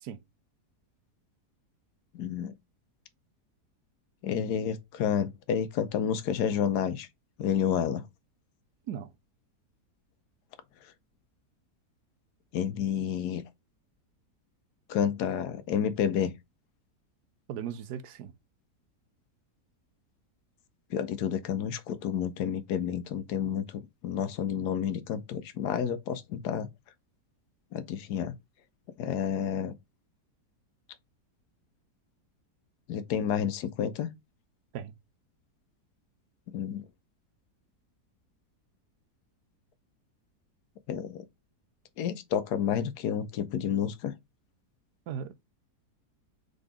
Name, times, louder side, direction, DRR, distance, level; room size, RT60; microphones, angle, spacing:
voice 1, 2.1-2.5 4.2-7.1 7.4-8.0 12.5-13.4 14.9-16.3 20.9-26.7 27.7-28.3 29.0-29.7 32.9-34.1 36.5-36.8 40.9-41.2 42.0-44.1, left 8 dB, 80° left, 1.3 m, -30 dB
voice 2, 17.5-18.3 34.7-34.9 45.1-45.3, right 8 dB, 80° right, 1.3 m, -37 dB
3.9 x 3.8 x 3.5 m
omnidirectional pair, 1.7 m